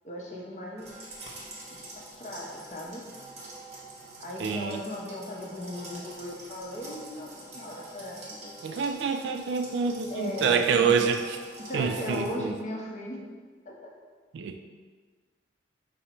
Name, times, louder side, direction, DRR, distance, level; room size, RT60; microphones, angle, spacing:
voice 1, 0.0-0.9 1.7-3.0 4.2-7.3 7.5-9.2 10.1-11.1 11.6-13.2 13.7-13.9, left 1 dB, 40° left, -2 dB, 0.6 m, -38 dB
sound 1, 0.8-12.3, right 2 dB, 35° right, 0.8 m, -45 dB
voice 2, 4.4-4.8 8.6-11.4 11.7-12.6 14.3-14.6, right 6 dB, 75° right, 7 dB, 0.3 m, -27 dB
4.9 x 2.0 x 4.3 m, 1.5 s
head